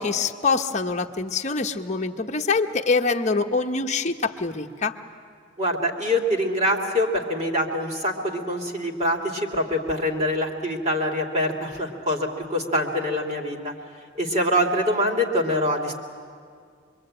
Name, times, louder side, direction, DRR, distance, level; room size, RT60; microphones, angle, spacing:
voice 1, 0.0-4.9, left 4 dB, 35° left, 4 dB, 1.1 m, -25 dB
voice 2, 5.6-13.7 14.1-16.0, equal, 35° right, 1 dB, 2.9 m, -24 dB
26.0 x 22.5 x 8.9 m, 2.1 s
head